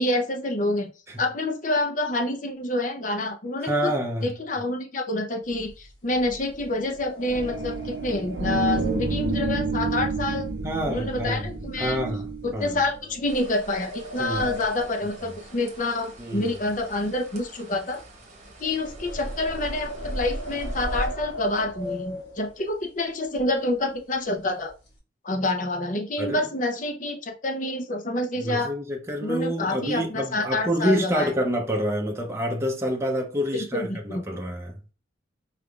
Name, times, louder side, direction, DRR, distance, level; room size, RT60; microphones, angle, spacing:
voice 1, 0.0-0.9 1.2-3.9 4.2-10.5 10.9-12.0 12.4-18.0 18.6-24.7 25.2-28.7 29.2-31.3 33.7-34.2, left 2 dB, 40° left, 0.7 m, -27 dB
voice 2, 3.6-4.3 10.6-11.5 11.8-12.8 14.2-14.4 16.2-16.5 26.2-26.4 28.4-34.7, equal, 15° right, 0.6 m, -27 dB
sound 1, 5.4-10.8 11.1-11.4 11.9-12.1 12.9-16.2 16.5-22.7 23.3-23.4 23.7-24.0 24.3-25.0, equal, 60° left, 1.5 m, -39 dB
sound 2, 7.3-13.3, right 3 dB, 65° right, 0.6 m, -29 dB
sound 3, 13.3-21.1, right 1 dB, 35° right, 1.0 m, -39 dB
5.0 x 3.4 x 2.3 m
head